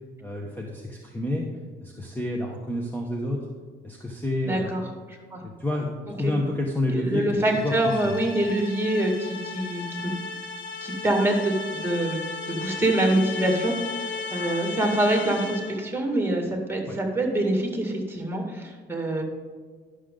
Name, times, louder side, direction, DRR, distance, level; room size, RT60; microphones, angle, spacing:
voice 1, 0.2-1.5 1.8-3.4 3.8-4.7 5.4-8.2 16.9-17.0, left 1 dB, 10° left, 0 dB, 1.1 m, -29 dB
voice 2, 4.5-4.8 5.3-5.4 6.2-6.3 6.9-10.1 10.8-12.2 12.5-13.8 14.3-19.2, right 1 dB, 10° right, 2 dB, 2.1 m, -25 dB
sound 1, 7.5-15.9, left 4 dB, 65° left, 1.3 m, -35 dB
11.5 x 6.4 x 3.8 m, 1.5 s
cardioid pair, 90°, 20 cm